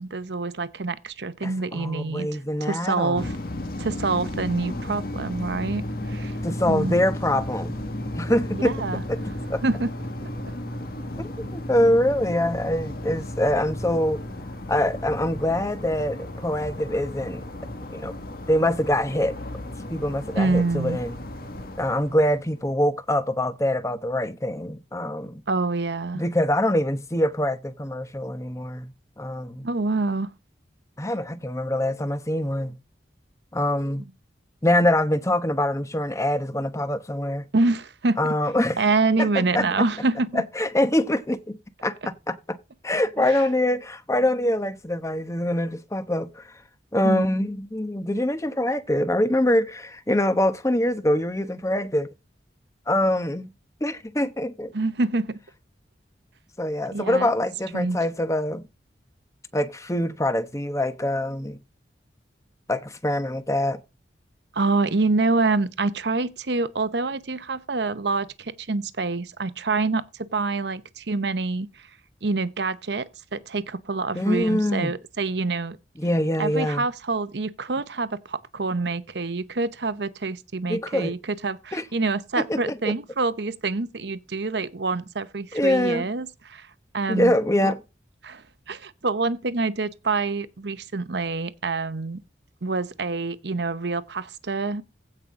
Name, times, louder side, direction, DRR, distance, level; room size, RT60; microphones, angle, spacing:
voice 1, 0.0-3.3 3.8-6.4 6.7-6.9 8.6-9.0 9.6-9.9 20.3-21.0 25.5-26.2 29.6-30.3 37.5-38.3 38.8-40.4 43.2-43.3 47.0-47.3 54.7-55.4 56.9-57.3 57.7-58.0 64.5-71.7 72.2-75.8 76.4-86.7 86.9-87.3 87.6-87.7 88.2-92.2 92.6-94.8, right 3 dB, 70° right, 0.9 m, -26 dB
voice 2, 1.4-3.3 6.4-7.7 8.2-9.6 11.2-14.2 14.7-17.5 17.9-18.1 18.5-19.3 19.9-21.2 21.8-25.4 26.1-29.7 31.0-32.7 33.5-34.1 34.6-37.4 38.2-38.8 39.2-39.9 40.3-42.6 42.8-46.5 46.9-52.1 52.9-53.5 53.8-54.7 56.6-58.6 59.5-61.6 62.7-63.8 74.1-74.9 76.0-76.9 80.7-81.1 81.7-81.8 82.5-82.9 85.5-86.1 87.1-87.8, left 1 dB, 15° left, 0.9 m, -24 dB
sound 1, 3.2-22.6, left 1 dB, 55° left, 1.7 m, -34 dB
16.0 x 5.5 x 3.7 m
head